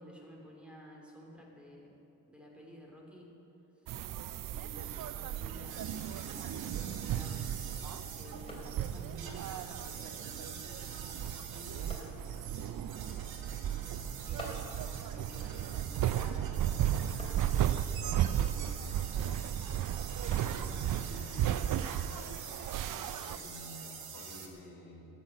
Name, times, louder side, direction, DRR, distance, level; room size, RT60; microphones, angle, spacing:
voice 1, 0.0-2.0 2.3-3.4 3.8-3.9 4.5-7.4 8.1-13.0 13.5-19.4, equal, 5° right, -2 dB, 3.1 m, -53 dB
sound 1, 3.9-23.4, right 11 dB, 60° right, 0.6 m, -35 dB
sound 2, 4.7-24.5, right 7 dB, 80° right, 1.8 m, -46 dB
sound 3, 6.9-22.5, left 1 dB, 15° left, 3.2 m, -55 dB
voice 2, 20.2-21.7 22.0-22.4 22.6-25.1, left 1 dB, 80° left, -2 dB, 3.7 m, -50 dB
14.5 x 9.0 x 7.8 m, 2.9 s
cardioid pair, 95°, 36 cm